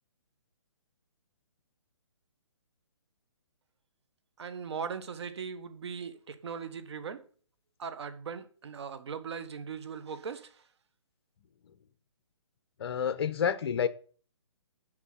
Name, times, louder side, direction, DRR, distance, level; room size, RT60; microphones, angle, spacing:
voice 1, 4.4-7.2 7.8-10.5, right 6 dB, 60° right, 1.5 m, -39 dB
voice 2, 12.8-13.9, left 7 dB, 50° left, 1.0 m, -29 dB
10.0 x 5.5 x 6.7 m
hypercardioid pair, 160°, 16 cm